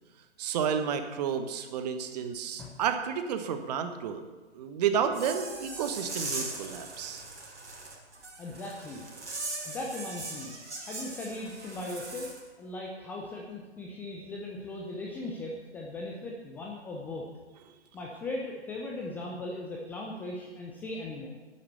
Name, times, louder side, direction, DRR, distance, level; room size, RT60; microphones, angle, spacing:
voice 1, 0.4-4.2 4.5-7.2, right 7 dB, 35° right, 8 dB, 1.2 m, -31 dB
sound 1, 5.1-12.4, right 2 dB, 75° right, 4.2 m, -40 dB
voice 2, 8.4-9.0 9.6-10.5 10.8-17.3 17.9-21.3, left 2 dB, 5° left, -1 dB, 0.5 m, -38 dB
10.5 x 9.9 x 6.8 m, 1.3 s
figure-of-eight pair, 125°, 35 cm